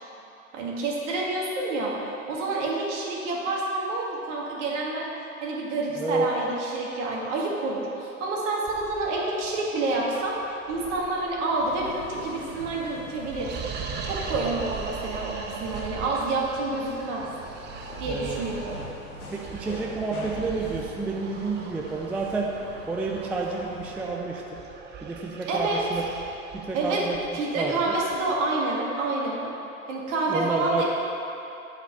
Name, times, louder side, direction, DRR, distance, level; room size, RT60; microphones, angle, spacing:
voice 1, 0.5-2.0 2.3-5.1 5.4-13.6 14.1-17.3 18.0-18.8 25.5-25.8 26.7-27.0 27.3-29.5 29.9-30.8, right 2 dB, 55° right, -3 dB, 2.1 m, -28 dB
voice 2, 6.0-6.3 14.3-14.6 18.1-18.4 18.8-18.9 19.3-22.5 22.9-24.6 25.0-26.0 26.5-27.2 27.6-27.9 30.3-30.8, right 3 dB, 5° right, -1 dB, 0.3 m, -29 dB
sound 1, 8.7-28.3, right 6 dB, 25° right, 1.0 m, -40 dB
sound 2, 11.6-24.2, left 2 dB, 90° left, 1.3 m, -44 dB
8.9 x 5.2 x 7.0 m, 3.0 s
figure-of-eight pair, 90°, 42 cm